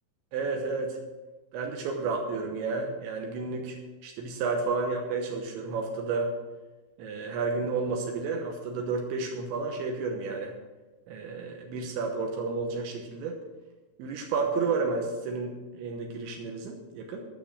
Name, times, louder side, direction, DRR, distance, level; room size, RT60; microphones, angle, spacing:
voice 1, 0.3-1.0 1.5-6.3 7.0-10.5 11.1-13.4 14.0-17.2, right 4 dB, 75° right, 2 dB, 3.3 m, -31 dB
12.0 x 6.4 x 7.4 m, 1.2 s
omnidirectional pair, 5.6 m